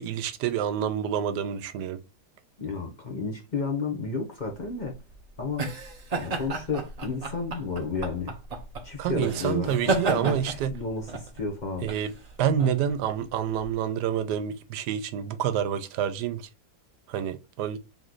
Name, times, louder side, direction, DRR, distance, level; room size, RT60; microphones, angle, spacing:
voice 1, 0.0-2.0 9.0-10.7 11.8-12.1 12.4-16.5 17.1-17.8, right 9 dB, 90° right, 1.2 m, -28 dB
voice 2, 2.6-5.0 5.4-5.7 6.2-8.4 8.8-11.9, left 4 dB, 35° left, 0.8 m, -32 dB
sound 1, 4.5-13.7, right 3 dB, 40° right, 0.6 m, -33 dB
3.7 x 3.1 x 3.8 m
omnidirectional pair, 1.8 m